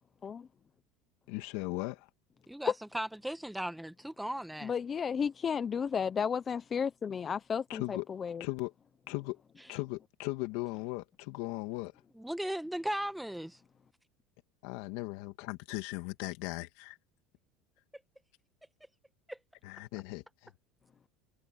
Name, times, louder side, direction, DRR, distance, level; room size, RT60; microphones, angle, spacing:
voice 1, 1.3-2.1 7.7-8.1 8.4-8.7 9.1-9.4 9.7-12.0 14.6-17.0 19.6-20.5, left 21 dB, 70° left, 2.4 m, -38 dB
voice 2, 2.5-4.7 12.2-13.6 19.3-19.4, right 1 dB, ahead, 1.4 m, -37 dB
voice 3, 4.6-8.4, left 7 dB, 25° left, 0.7 m, -33 dB
supercardioid pair, 135°, 0 cm